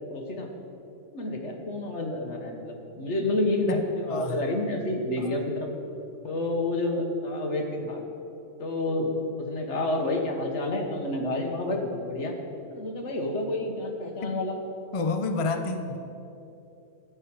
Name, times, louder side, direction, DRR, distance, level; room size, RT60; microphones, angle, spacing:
voice 1, 0.1-0.5 1.1-5.7 6.2-8.0 8.6-12.4 12.7-14.6, left 2 dB, 70° left, 3 dB, 1.7 m, -29 dB
voice 2, 4.1-4.4 5.2-5.4 14.2-14.3 14.9-16.0, left 3 dB, 35° left, 7 dB, 0.6 m, -29 dB
14.0 x 5.5 x 8.8 m, 2.8 s
omnidirectional pair, 1.2 m